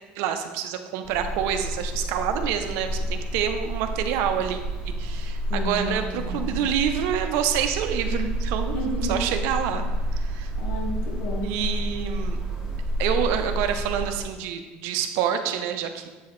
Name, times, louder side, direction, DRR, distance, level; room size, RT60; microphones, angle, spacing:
voice 1, 0.2-4.6 5.0-8.8 9.1-9.8 10.1-10.5 11.4-12.4 13.0-16.0, right 9 dB, 75° right, 7 dB, 0.6 m, -27 dB
sound 1, 1.0-14.2, right 1 dB, 10° right, 1.6 m, -30 dB
voice 2, 5.5-6.5 8.7-9.3 10.5-11.8 12.6-12.7, left 1 dB, 85° left, 0 dB, 1.3 m, -32 dB
8.0 x 4.7 x 3.1 m, 1.3 s
supercardioid pair, 120°, 4 cm